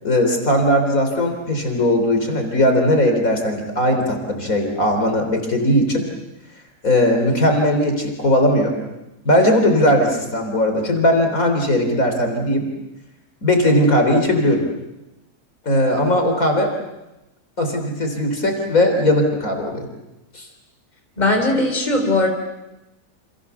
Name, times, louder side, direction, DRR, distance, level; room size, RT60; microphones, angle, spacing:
voice 1, 0.0-6.1 6.8-8.8 9.2-12.7 13.4-14.6 15.7-16.7 17.6-19.9 20.3-20.5, left 1 dB, 60° left, 4 dB, 4.2 m, -18 dB
voice 2, 21.2-22.3, left 2 dB, 25° left, 3 dB, 3.7 m, -18 dB
29.5 x 27.5 x 7.1 m, 0.97 s
omnidirectional pair, 1.6 m